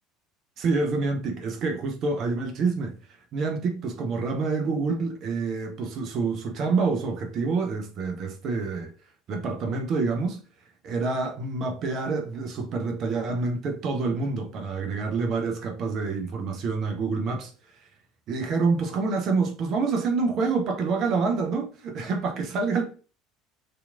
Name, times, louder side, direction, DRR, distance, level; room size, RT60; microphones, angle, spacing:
voice 1, 0.6-3.0 3.3-8.9 9.3-10.4 10.8-17.5 18.3-22.8, right 4 dB, 45° right, 0.5 m, -27 dB
2.8 x 2.5 x 2.3 m
figure-of-eight pair, 65°, 0 cm